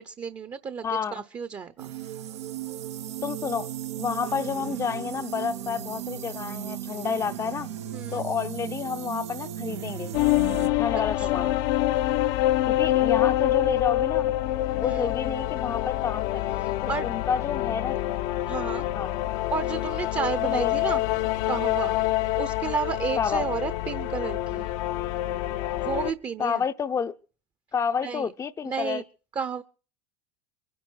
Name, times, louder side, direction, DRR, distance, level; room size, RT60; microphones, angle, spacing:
voice 1, 0.0-1.9 7.9-8.2 11.2-11.6 14.8-15.1 16.6-17.1 18.5-18.9 19.5-21.0 21.5-22.0 22.4-24.7 25.8-26.6 28.0-28.3 28.6-29.0 29.3-29.6, right 6 dB, 25° right, 0.9 m, -32 dB
voice 2, 0.8-1.2 3.2-3.7 4.0-7.7 8.1-10.1 10.8-11.6 12.7-14.3 14.7-16.6 16.8-18.1 18.9-19.1 20.4-20.9 23.2-23.4 26.4-27.1 27.7-29.0, left 6 dB, 20° left, 0.7 m, -30 dB
sound 1, 1.8-10.7, right 10 dB, 90° right, 1.5 m, -36 dB
sound 2, 10.1-26.1, left 15 dB, 60° left, 0.8 m, -26 dB
23.0 x 10.5 x 4.7 m
supercardioid pair, 115°, 14 cm